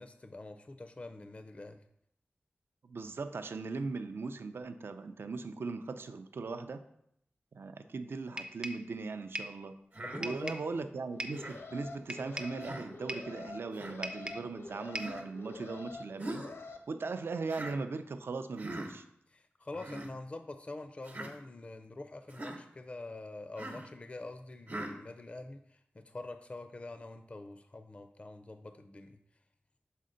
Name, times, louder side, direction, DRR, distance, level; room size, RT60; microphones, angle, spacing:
voice 1, 0.0-1.8 10.0-10.6 19.3-29.2, left 2 dB, 30° left, 9 dB, 0.4 m, -45 dB
voice 2, 2.8-6.8 7.5-9.7 10.2-16.4 16.9-19.0, right 4 dB, 75° right, 9 dB, 0.4 m, -39 dB
sound 1, 8.4-8.9 9.3-9.6 10.2-10.7 11.2-11.5 12.1-12.6 13.1-13.4 14.0-14.5 14.9-15.2, equal, 20° right, 0.5 m, -40 dB
Human voice, 9.9-10.2 11.3-11.6 12.6-12.9 13.7-14.0 15.0-15.3 16.2-16.5 17.5-17.8 18.6-18.9 19.7-20.1 21.0-21.3 22.3-22.6 23.6-23.9 24.7-24.9, right 1 dB, 50° right, 1.0 m, -42 dB
Alarm, 11.1-16.8, left 3 dB, 75° left, 0.6 m, -47 dB
6.5 x 4.2 x 3.8 m, 0.73 s
wide cardioid pair, 95°, 4 cm